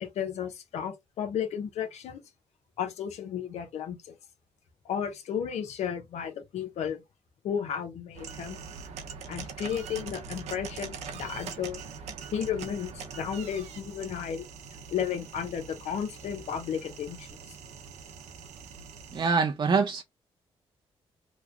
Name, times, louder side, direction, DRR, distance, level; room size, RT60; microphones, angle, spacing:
voice 1, 0.0-2.2 2.8-4.1 4.8-7.0 7.4-8.6 9.3-11.8 12.3-14.5 14.9-17.3, left 8 dB, 75° left, 0.8 m, -33 dB
sound 1, 8.1-19.3, right 5 dB, 80° right, 0.7 m, -43 dB
voice 2, 19.1-20.0, right 5 dB, 45° right, 0.5 m, -24 dB
3.1 x 2.2 x 3.5 m
cardioid pair, 65°, 11 cm